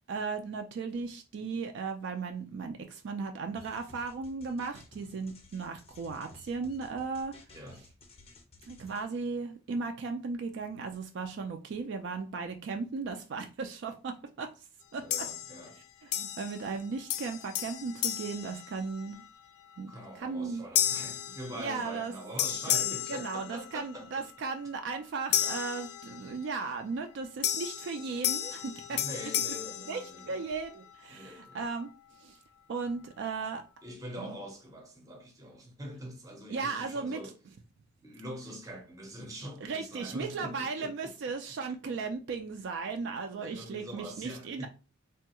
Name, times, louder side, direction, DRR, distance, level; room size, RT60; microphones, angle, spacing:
voice 1, 0.1-7.3 8.6-14.5 14.9-15.0 16.0-19.2 19.8-19.9 20.2-20.6 21.6-22.1 22.7-22.8 23.1-29.0 29.9-31.9 32.2-32.4 32.7-33.6 34.2-34.3 36.5-37.2 39.6-44.7, right 4 dB, 55° right, 0.3 m, -36 dB
sound 1, 3.5-9.0, left 2 dB, 30° left, 0.5 m, -55 dB
voice 2, 7.5-7.9 15.0-15.8 19.9-24.3 28.9-30.4 31.1-31.7 33.8-37.3 38.0-41.6 43.4-44.7, equal, 15° right, 0.6 m, -44 dB
sound 2, 15.1-15.8 16.1-16.8 17.1-19.3 19.8-20.1 20.8-22.1 22.4-24.0 25.3-26.5 27.4-30.7, left 11 dB, 90° left, 0.3 m, -33 dB
3.4 x 2.3 x 2.8 m
head